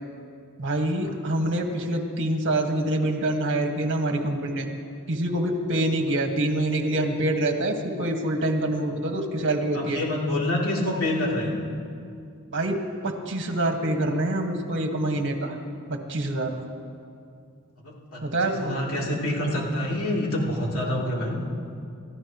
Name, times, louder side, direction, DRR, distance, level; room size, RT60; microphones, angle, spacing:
voice 1, 0.6-4.7 5.1-10.0 12.5-12.7 13.0-15.6 15.9-16.6 18.2-18.7, right 1 dB, 55° right, 3 dB, 1.7 m, -26 dB
voice 2, 9.7-11.6 17.8-21.4, left 1 dB, 65° left, -4 dB, 3.2 m, -27 dB
29.0 x 14.0 x 3.1 m, 2.4 s
head